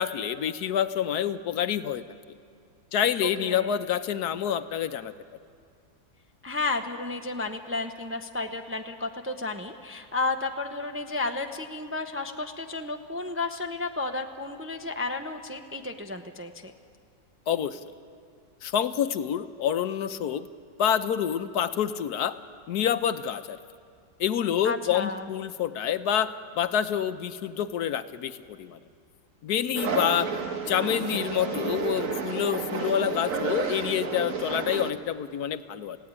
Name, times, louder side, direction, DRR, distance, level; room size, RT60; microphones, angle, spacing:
voice 1, 0.0-2.0 2.9-5.1 17.5-17.8 18.6-20.5 20.8-22.3 22.7-23.6 24.2-26.3 26.6-28.8 29.4-30.3 30.7-36.0, left 9 dB, 75° left, 11 dB, 1.3 m, -27 dB
voice 2, 3.2-3.8 6.4-16.7 24.6-25.3, left 3 dB, 10° right, 5 dB, 0.6 m, -32 dB
sound 1, 29.7-34.9, right 5 dB, 55° right, 1.6 m, -31 dB
23.0 x 16.5 x 9.7 m, 2.3 s
omnidirectional pair, 1.8 m